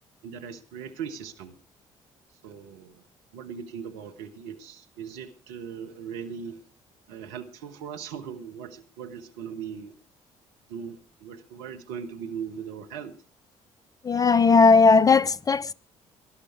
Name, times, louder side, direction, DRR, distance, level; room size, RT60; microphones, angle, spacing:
voice 1, 0.2-1.5 2.4-3.1 3.3-6.6 7.1-9.9 10.7-13.1, right 7 dB, 70° right, 1.5 m, -39 dB
voice 2, 14.0-15.7, left 4 dB, 25° left, 0.6 m, -17 dB
19.0 x 12.0 x 4.6 m
figure-of-eight pair, 45°, 16 cm